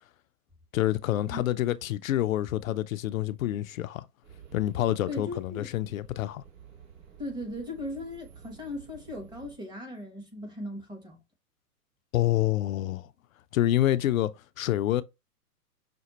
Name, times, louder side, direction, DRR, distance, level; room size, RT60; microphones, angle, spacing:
voice 1, 0.7-4.0 4.5-6.4 12.1-13.1 13.5-14.3 14.6-15.0, left 13 dB, 60° left, 0.5 m, -27 dB
sound 1, 4.2-9.6, right 8 dB, 55° right, 2.7 m, -52 dB
voice 2, 5.1-5.7 7.2-11.2, left 1 dB, 10° right, 0.9 m, -38 dB
5.9 x 2.1 x 2.9 m
hypercardioid pair, 125°, 48 cm